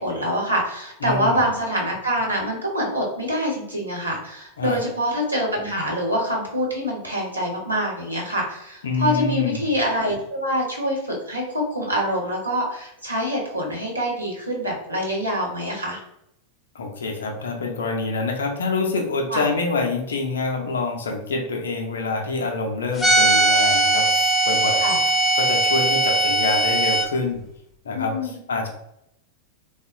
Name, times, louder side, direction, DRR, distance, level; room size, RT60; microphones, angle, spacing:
voice 1, 0.0-16.0 19.3-19.4 24.8-25.0 27.9-28.4, equal, 85° right, -2 dB, 0.9 m, -25 dB
voice 2, 1.0-1.5 4.6-4.8 8.8-9.6 16.7-24.1 24.5-24.9 25.4-27.4 27.8-28.7, left 3 dB, 65° left, 2 dB, 0.4 m, -26 dB
sound 1, 23.0-27.1, right 2 dB, 15° left, 0.6 m, -19 dB
3.5 x 2.0 x 2.5 m, 0.79 s
figure-of-eight pair, 90°, 0 cm